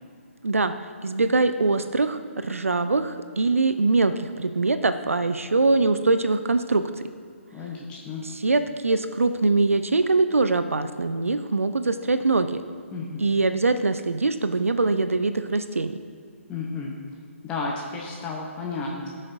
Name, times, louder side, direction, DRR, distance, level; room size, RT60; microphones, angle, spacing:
voice 1, 0.4-0.7 1.0-7.1 8.2-12.6 13.2-16.0, right 3 dB, 75° right, 10 dB, 0.4 m, -23 dB
voice 2, 7.5-8.2 12.9-13.3 16.5-16.9 17.4-19.1, left 4 dB, 15° left, -2 dB, 0.8 m, -32 dB
15.5 x 6.4 x 2.6 m, 2.2 s
figure-of-eight pair, 135°, 8 cm